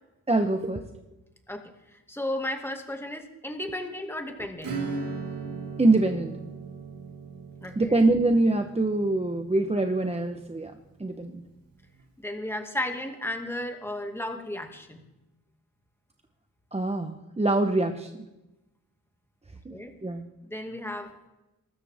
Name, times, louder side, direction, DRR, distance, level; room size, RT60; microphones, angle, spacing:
voice 1, 0.3-0.9 5.8-6.4 7.8-10.7 11.0-11.4 16.7-18.3 19.6-19.7 20.0-20.2, right 2 dB, 20° right, 5 dB, 1.0 m, -24 dB
voice 2, 1.5-4.7 7.6-8.0 12.2-15.0 19.7-19.9 20.4-21.3, left 1 dB, 5° left, 4 dB, 2.1 m, -34 dB
Acoustic guitar / Strum, 4.6-10.8, right 4 dB, 75° right, 4.2 m, -38 dB
23.5 x 13.0 x 3.6 m, 1.0 s
cardioid pair, 90°, 34 cm